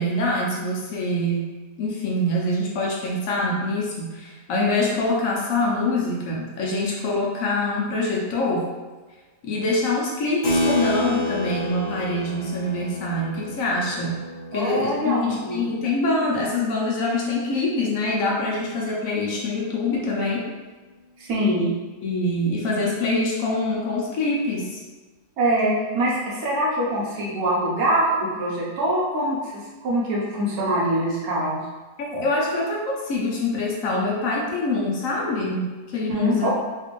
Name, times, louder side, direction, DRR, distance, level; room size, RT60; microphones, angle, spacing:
voice 1, 0.0-1.5 1.8-8.7 9.4-14.2 14.5-20.5 21.6-21.7 22.0-24.8 32.0-36.5, left 2 dB, 70° left, -3 dB, 1.0 m, -25 dB
Keyboard (musical), 10.4-16.5, left 1 dB, 45° left, 0.6 m, -29 dB
voice 2, 14.5-15.6 21.2-21.7 25.4-31.6 36.1-36.5, right 1 dB, 75° right, -5 dB, 1.3 m, -24 dB
3.3 x 2.4 x 3.0 m, 1.3 s
omnidirectional pair, 1.6 m